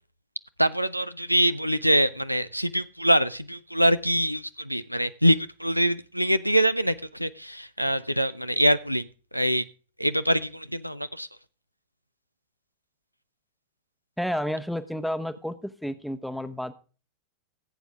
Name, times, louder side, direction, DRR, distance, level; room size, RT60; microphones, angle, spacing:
voice 1, 0.6-9.1 9.3-9.6 10.0-11.3, equal, 90° right, 13 dB, 0.5 m, -24 dB
voice 2, 14.2-16.7, equal, ahead, 10 dB, 1.0 m, -31 dB
16.0 x 8.2 x 3.6 m, 0.36 s
figure-of-eight pair, 90°, 0 cm